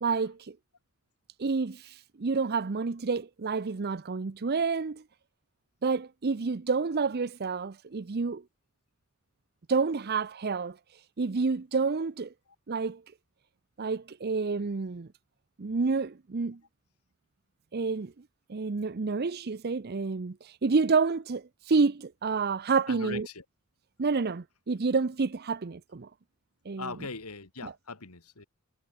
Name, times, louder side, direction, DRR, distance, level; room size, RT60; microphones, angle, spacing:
voice 1, 0.0-0.6 1.4-5.0 5.8-8.4 9.7-10.8 11.2-12.3 12.7-13.0 13.8-15.1 15.6-16.6 17.7-18.1 18.5-23.3 24.0-26.1 26.7-26.9 27.6-27.7, right 4 dB, 45° right, 0.6 m, -29 dB
voice 2, 22.9-23.4 26.8-28.5, left 4 dB, 85° left, 2.6 m, -40 dB
head